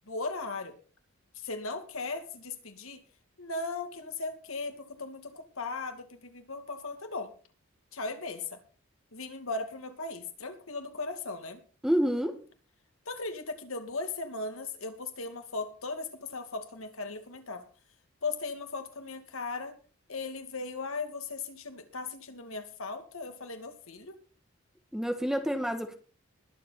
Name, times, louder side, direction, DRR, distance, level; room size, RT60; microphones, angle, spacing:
voice 1, 0.1-0.7 1.4-3.0 3.4-7.3 7.9-8.6 9.1-11.6 13.1-17.6 18.2-19.8 20.1-24.2, left 3 dB, 70° left, 6 dB, 2.4 m, -37 dB
voice 2, 11.8-12.4 24.9-25.9, equal, ahead, 7 dB, 1.4 m, -28 dB
21.0 x 8.0 x 4.2 m, 0.37 s
head